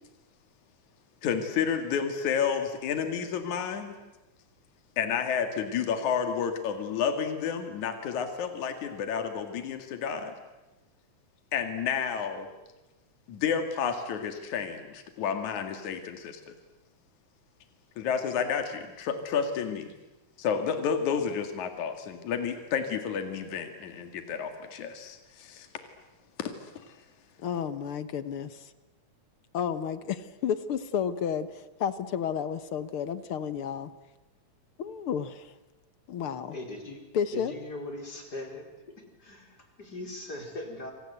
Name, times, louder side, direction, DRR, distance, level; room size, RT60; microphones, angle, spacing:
voice 1, 1.2-4.0 5.0-10.3 11.5-12.5 13.3-16.5 18.0-19.9 20.4-25.7 26.4-27.0, left 7 dB, 75° left, 7 dB, 3.4 m, -30 dB
voice 2, 27.4-28.7 29.5-33.9 34.8-35.5 36.1-36.6 37.1-37.5, left 8 dB, 55° left, 13 dB, 1.7 m, -31 dB
voice 3, 36.5-37.0 37.3-38.7 39.2-40.9, left 2 dB, 30° left, 3 dB, 5.2 m, -39 dB
28.0 x 26.5 x 8.1 m, 1.0 s
omnidirectional pair, 3.4 m